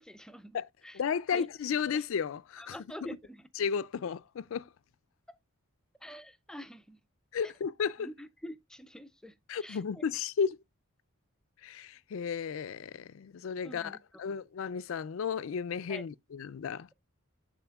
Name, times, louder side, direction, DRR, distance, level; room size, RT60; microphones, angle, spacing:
voice 1, 0.0-1.0 1.3-1.5 1.9-2.0 2.6-3.4 6.0-7.0 8.0-9.3 9.6-10.0 13.6-14.0 15.9-16.0, equal, 5° left, 0.4 m, -46 dB
voice 2, 0.9-3.1 3.6-4.7 7.3-8.1 9.5-10.6 11.6-16.9, left 6 dB, 70° left, 0.4 m, -34 dB
12.5 x 4.2 x 2.3 m
head